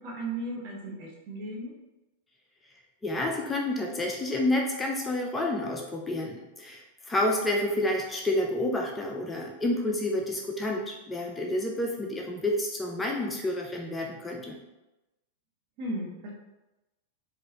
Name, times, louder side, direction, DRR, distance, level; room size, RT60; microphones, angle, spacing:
voice 1, 0.0-1.7 15.8-16.3, right 1 dB, 45° right, -2 dB, 1.1 m, -35 dB
voice 2, 3.0-14.6, left 1 dB, 15° left, 0 dB, 0.4 m, -29 dB
4.7 x 2.4 x 2.9 m, 1.0 s
figure-of-eight pair, 95°, 0 cm